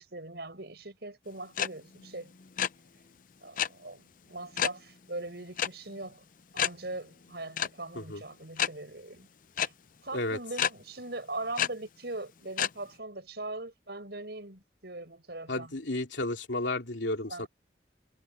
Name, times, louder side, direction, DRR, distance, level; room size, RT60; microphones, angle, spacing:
voice 1, 0.0-2.3 3.4-6.2 6.5-9.3 9.6-9.7 10.0-15.7 17.3-17.5, right 2 dB, 60° right, 7.2 m, -41 dB
sound 1, 1.6-1.7 1.9-2.7 3.6-3.7 4.6-4.8 5.6-5.7 6.0-6.1 6.6-6.7 7.6-7.7 8.6-8.7 9.6-9.7 10.6-10.7 11.6-11.7 12.6-12.7, left 9 dB, 45° left, 0.6 m, -28 dB
voice 2, 15.5-17.5, left 2 dB, 85° left, 2.9 m, -32 dB
head